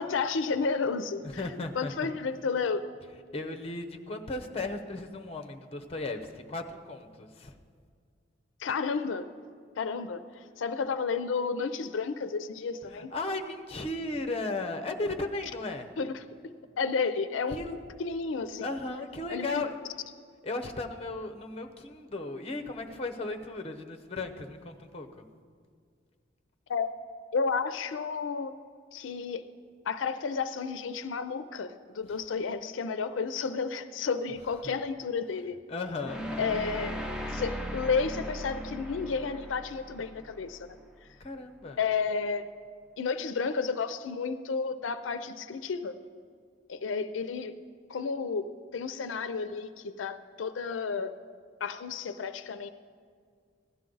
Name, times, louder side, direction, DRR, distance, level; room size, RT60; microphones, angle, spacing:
voice 1, 0.0-1.4 1.8-2.8 8.6-9.3 9.8-13.1 16.0-16.1 16.8-18.7 19.3-19.6 26.7-27.0 27.3-28.5 28.9-29.4 29.8-35.6 36.4-37.0 37.3-40.7 41.0-41.1 41.8-42.5 43.0-45.9 46.7-47.5 47.9-48.5 48.7-51.1 51.6-52.7, left 5 dB, 80° left, 11 dB, 0.4 m, -32 dB
voice 2, 1.2-2.1 3.3-7.6 12.9-15.9 17.5-17.8 18.6-19.8 20.4-25.2 35.7-36.3 41.2-41.8, left 2 dB, 30° left, 6 dB, 0.8 m, -36 dB
sound 1, 36.0-41.1, equal, 5° right, 0.7 m, -38 dB
16.0 x 11.5 x 3.9 m, 2.1 s
head